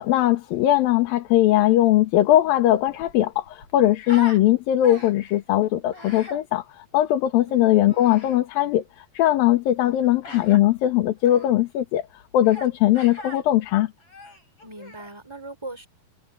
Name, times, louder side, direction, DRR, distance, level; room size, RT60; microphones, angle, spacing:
voice 1, 0.0-8.8 9.1-12.1 12.3-13.9, left 13 dB, 70° left, 3.1 m, -20 dB
Human voice, 2.5-2.6 2.8-4.4 4.8-5.3 5.9-6.4 7.9-8.4 10.2-10.6 11.2-11.5 12.4-12.7 12.9-13.4 14.0-15.1, left 1 dB, 35° left, 8.7 m, -40 dB
voice 2, 7.5-7.8 9.9-10.1 14.6-15.9, right 2 dB, 5° right, 4.9 m, -40 dB
omnidirectional pair, 4.4 m